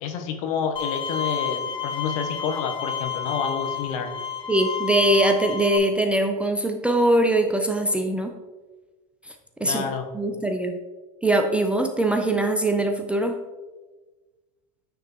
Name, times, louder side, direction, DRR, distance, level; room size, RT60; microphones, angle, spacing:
voice 1, 0.0-4.1 9.6-10.1, left 6 dB, 60° left, 5 dB, 1.0 m, -29 dB
Bowed string instrument, 0.8-5.8, left 8 dB, 25° left, 1.0 m, -30 dB
voice 2, 4.5-8.3 9.2-9.3 9.6-9.8 10.1-10.8 11.2-13.4, right 1 dB, 5° right, 4 dB, 0.4 m, -22 dB
9.2 x 3.5 x 2.9 m, 1.2 s
hypercardioid pair, 105°, 20 cm